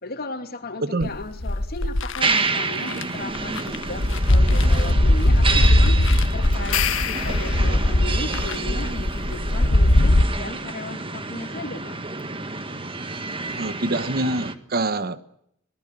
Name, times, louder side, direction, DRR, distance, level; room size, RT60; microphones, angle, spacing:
voice 1, 0.0-12.0, left 2 dB, 50° left, 6 dB, 2.8 m, -36 dB
voice 2, 0.8-1.1 13.6-15.2, right 2 dB, 50° right, 13 dB, 1.1 m, -25 dB
sound 1, 1.0-2.2 2.9-3.0 3.4-10.2, left 1 dB, 65° left, 1.4 m, -19 dB
sound 2, 2.2-14.5, right 3 dB, 25° right, 1.6 m, -29 dB
sound 3, 6.5-8.1, left 10 dB, 80° left, 1.8 m, -28 dB
24.0 x 18.5 x 9.9 m, 0.74 s
head